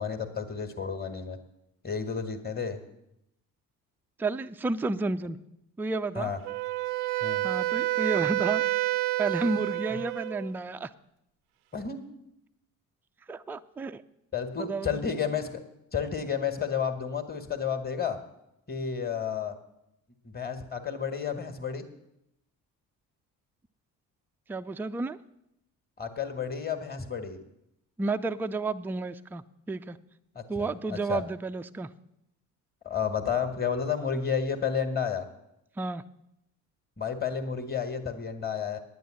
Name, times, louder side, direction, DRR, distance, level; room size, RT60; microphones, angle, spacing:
voice 1, 0.0-1.4 1.8-2.8 6.1-6.4 7.2-7.5 11.7-12.0 14.3-15.6 15.9-18.2 18.7-19.5 20.2-21.8 26.0-27.4 30.3-31.2 32.8-35.3 37.0-38.8, left 7 dB, 20° left, 8 dB, 1.6 m, -31 dB
voice 2, 4.2-5.4 5.8-6.3 7.4-8.6 9.2-10.9 13.3-14.0 14.6-15.0 24.5-25.2 28.0-30.0 30.5-31.9 35.8-36.0, right 3 dB, 5° right, 9 dB, 0.3 m, -31 dB
Wind instrument woodwind instrument, 6.5-10.5, right 17 dB, 60° right, 0.5 m, -29 dB
9.4 x 9.3 x 7.6 m, 0.84 s
hypercardioid pair, 55°, 46 cm